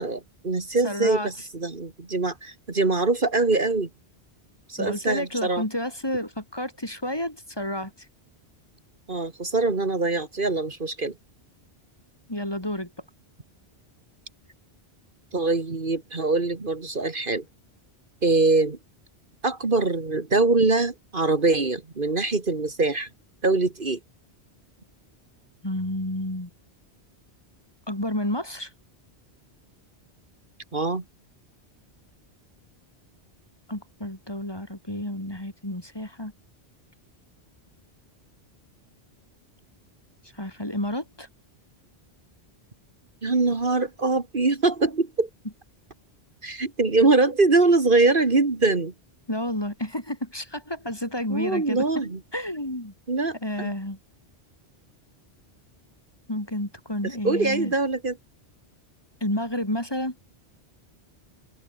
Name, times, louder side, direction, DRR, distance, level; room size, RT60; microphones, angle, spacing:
voice 1, 0.0-3.9 4.7-5.6 9.1-11.1 15.3-17.4 18.2-18.8 19.4-23.1 23.4-24.0 30.7-31.0 43.2-45.3 46.4-48.9 51.3-52.2 53.1-53.7 57.0-58.2, right 3 dB, 50° right, 2.1 m, -23 dB
voice 2, 0.8-1.3 4.8-7.9 12.3-12.9 25.6-26.5 27.9-28.7 33.7-36.3 40.4-41.3 49.3-51.9 52.3-52.9 53.4-54.0 56.3-57.7 59.2-60.2, left 1 dB, 20° left, 3.6 m, -30 dB
omnidirectional pair, 1.1 m